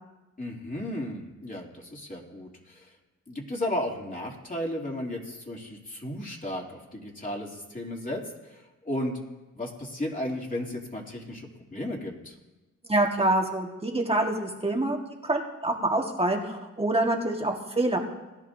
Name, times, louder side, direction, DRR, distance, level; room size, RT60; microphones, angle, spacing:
voice 1, 0.4-2.9 3.3-9.2 9.5-12.4, left 1 dB, 25° left, -2 dB, 2.9 m, -34 dB
voice 2, 12.9-15.0 15.2-18.0, right 1 dB, 20° right, 1 dB, 1.7 m, -26 dB
20.0 x 11.0 x 2.8 m, 1.1 s
cardioid pair, 60°, 31 cm